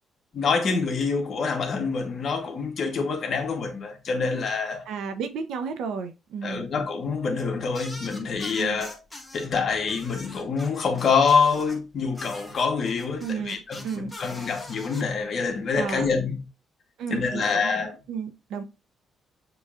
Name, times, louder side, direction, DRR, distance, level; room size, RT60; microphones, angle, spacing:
voice 1, 0.3-4.9 6.4-9.0 9.3-16.4 17.1-18.0, left 5 dB, 55° left, 1.3 m, -26 dB
voice 2, 4.9-6.7 8.6-8.8 13.2-13.6 13.8-14.1 15.8-16.1 17.0-17.7 18.1-18.6, right 6 dB, 85° right, 0.8 m, -32 dB
sound 1, 7.7-9.5 9.9-11.8 12.1-15.0, left 1 dB, 15° left, 1.7 m, -43 dB
6.8 x 3.2 x 2.5 m
cardioid pair, 90°, 0 cm